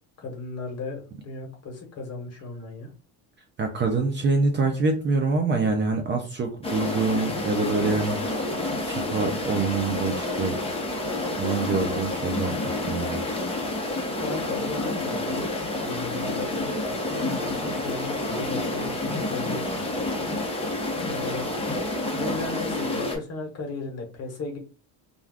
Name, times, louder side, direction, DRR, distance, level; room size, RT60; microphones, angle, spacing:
voice 1, 0.2-2.9 14.2-15.5 15.8-19.9 21.0-21.5 22.1-24.6, left 3 dB, 40° left, 2 dB, 1.1 m, -35 dB
voice 2, 3.6-8.2 8.8-10.6 11.4-13.3, right 3 dB, 30° right, 3 dB, 0.5 m, -25 dB
sound 1, 6.6-23.2, left 2 dB, 15° left, 0.7 m, -29 dB
2.4 x 2.3 x 3.3 m, 0.34 s
cardioid pair, 130°, 40 cm